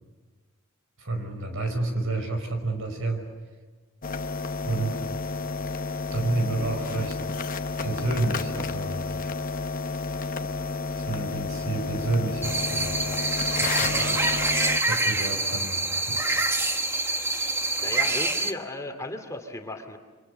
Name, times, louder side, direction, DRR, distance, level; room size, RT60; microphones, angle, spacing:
voice 1, 1.0-3.2 4.6-5.0 6.1-7.2 7.8-9.0 10.9-13.1 13.6-14.3 14.9-16.3, right 2 dB, 70° right, 6 dB, 5.5 m, -30 dB
sound 1, 4.0-14.8, left 3 dB, 40° left, 1.1 m, -31 dB
sound 2, 12.4-18.5, right 2 dB, 10° right, 1.2 m, -26 dB
voice 2, 17.2-17.5 17.8-20.0, left 2 dB, 15° left, 4 dB, 2.4 m, -36 dB
29.0 x 25.0 x 6.8 m, 1.3 s
head